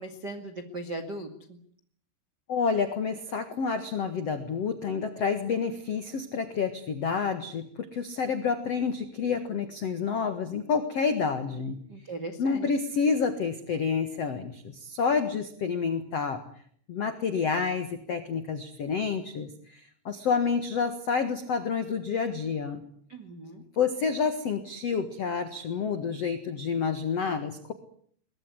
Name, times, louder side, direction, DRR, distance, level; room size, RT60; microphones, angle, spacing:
voice 1, 0.0-1.6 11.9-12.7 23.1-23.6, right 2 dB, 40° right, 8 dB, 1.6 m, -38 dB
voice 2, 2.5-11.8 12.4-16.4 16.9-22.8 23.8-27.7, left 5 dB, 60° left, 9 dB, 1.7 m, -29 dB
23.0 x 21.0 x 9.6 m, 0.62 s
omnidirectional pair, 5.5 m